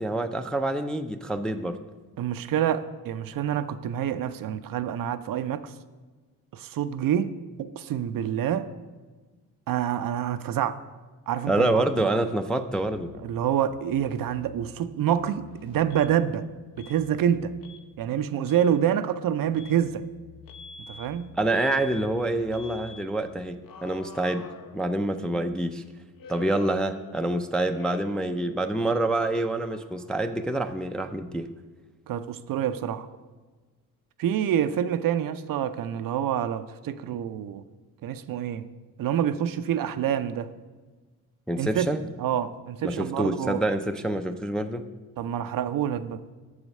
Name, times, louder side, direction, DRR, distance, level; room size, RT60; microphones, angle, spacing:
voice 1, 0.0-1.8 11.5-13.1 21.3-24.5 24.7-25.8 26.3-31.5 41.5-42.0 42.8-44.8, right 1 dB, ahead, 7 dB, 0.3 m, -27 dB
voice 2, 2.2-5.7 6.5-8.7 9.7-10.8 11.3-12.2 13.2-16.4 16.8-17.5 18.0-20.0 20.9-21.4 32.1-33.1 34.2-37.6 38.0-38.6 39.0-40.5 41.6-41.9 42.2-43.6 45.2-46.2, right 9 dB, 55° right, 12 dB, 0.5 m, -27 dB
sound 1, 12.7-16.2 16.6-17.7 19.3-23.8, left 9 dB, 80° left, 1.4 m, -51 dB
Alarm, 15.9-16.1 16.8-17.0 17.6-17.8 18.3-18.7 19.5-19.8 20.5-21.1 21.5-22.1 22.5-23.0 23.6-25.2 26.2-27.4 27.7-28.3 28.5-30.2, left 5 dB, 55° left, 0.7 m, -46 dB
6.8 x 4.9 x 5.3 m, 1.3 s
supercardioid pair, 60°, 40 cm